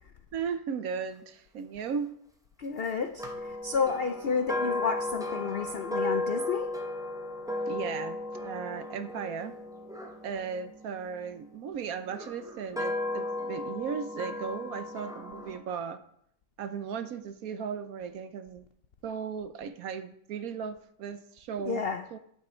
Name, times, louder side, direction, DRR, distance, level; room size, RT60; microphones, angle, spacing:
voice 1, 0.3-2.1 7.7-9.6 10.2-16.0 16.6-18.7 19.0-22.2, right 6 dB, 65° right, 10 dB, 1.0 m, -36 dB
voice 2, 2.6-6.7 21.7-22.0, left 6 dB, 65° left, 6 dB, 0.5 m, -31 dB
sound 1, 3.2-11.4 12.1-15.6, left 2 dB, 5° right, 0.5 m, -35 dB
9.0 x 8.7 x 4.4 m, 0.69 s
omnidirectional pair, 1.8 m